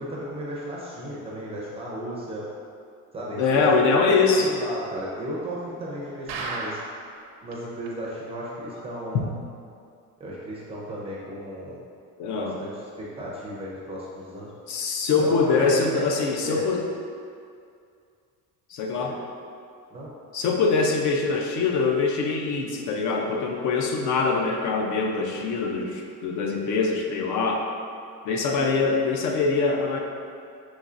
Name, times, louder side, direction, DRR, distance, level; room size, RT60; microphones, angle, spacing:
voice 1, 0.0-2.5 3.1-3.7 4.3-6.8 7.4-9.3 10.2-11.8 12.2-14.5 15.2-16.7 19.0-19.1 19.9-20.1 20.4-20.6, equal, 15° right, -6 dB, 0.4 m, -35 dB
voice 2, 3.4-4.5 12.2-12.6 14.7-16.8 18.7-19.2 20.3-27.7 28.2-30.0, left 4 dB, 55° left, 1 dB, 0.5 m, -23 dB
sound 1, 6.3-7.1 7.5-7.6 7.9-8.0 8.4-8.5, right 3 dB, 75° right, 0.6 m, -33 dB
5.5 x 3.0 x 2.4 m, 2.4 s
cardioid pair, 180°, 36 cm